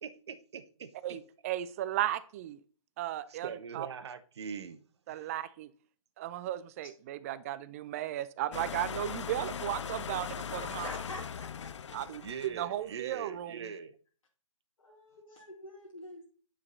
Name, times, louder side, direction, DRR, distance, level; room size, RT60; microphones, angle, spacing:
voice 1, 0.0-1.2 3.3-4.8 5.1-5.3 12.2-14.0, right 6 dB, 50° right, 1.0 m, -42 dB
voice 2, 1.0-2.6 3.0-3.9 5.1-5.7 6.2-10.9 11.9-13.6, right 13 dB, 25° right, 0.5 m, -35 dB
sound 1, 8.5-12.7, left 7 dB, 55° left, 0.5 m, -40 dB
voice 3, 10.8-12.4 14.8-16.2, left 2 dB, 75° left, 2.4 m, -46 dB
9.6 x 5.2 x 4.0 m
figure-of-eight pair, 130°, 18 cm